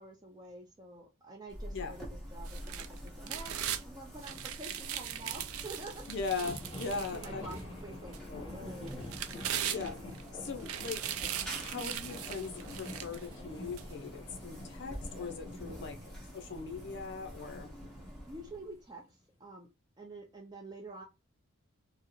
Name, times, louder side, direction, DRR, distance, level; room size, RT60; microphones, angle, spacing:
voice 1, 0.0-6.0 6.9-7.6 7.8-9.0 15.6-15.8 18.3-19.7 20.0-21.0, right 2 dB, 20° right, 0.5 m, -48 dB
sound 1, 1.5-18.9, equal, ahead, 1.1 m, -48 dB
sound 2, 2.4-3.8 4.2-7.6 8.1-8.2 8.9-10.2 10.6-13.3 13.8-13.9, right 10 dB, 85° right, 0.5 m, -39 dB
sound 3, 4.1-18.5 19.0-19.1, left 1 dB, 25° left, 1.4 m, -48 dB
voice 2, 6.1-7.5 8.3-8.5 9.7-16.0 16.3-17.7, left 4 dB, 55° left, 0.5 m, -40 dB
4.6 x 2.1 x 3.0 m
head